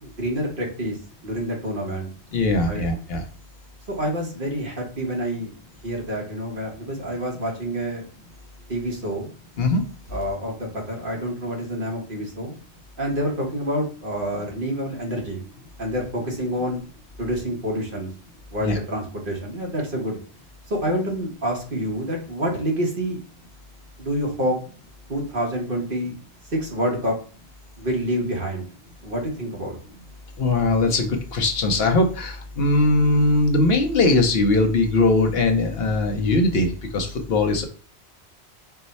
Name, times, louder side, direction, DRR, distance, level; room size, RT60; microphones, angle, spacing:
voice 1, 0.0-1.0 1.2-2.1 2.7-2.8 3.9-5.5 5.8-8.1 8.7-9.3 10.1-12.5 13.0-15.4 15.8-16.8 17.2-18.1 18.5-20.2 20.7-23.2 24.0-24.6 25.1-26.1 26.5-27.2 27.8-28.7 29.0-29.8, equal, 50° right, -1 dB, 1.2 m, -27 dB
voice 2, 2.3-3.2 9.6-9.8 18.6-18.8 30.4-37.6, left 2 dB, 65° left, 4 dB, 0.9 m, -20 dB
4.6 x 2.2 x 4.0 m, 0.39 s
omnidirectional pair, 1.2 m